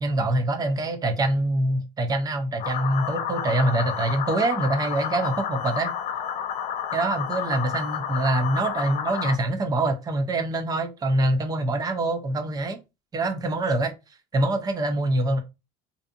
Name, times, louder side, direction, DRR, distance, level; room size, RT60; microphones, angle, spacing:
voice 1, 0.0-5.9 6.9-12.8 13.1-13.9 14.3-15.4, right 2 dB, 20° right, 0.5 m, -25 dB
sound 1, 2.6-9.4, left 8 dB, 40° left, 0.4 m, -30 dB
2.6 x 2.3 x 2.5 m
cardioid pair, 130°, 19 cm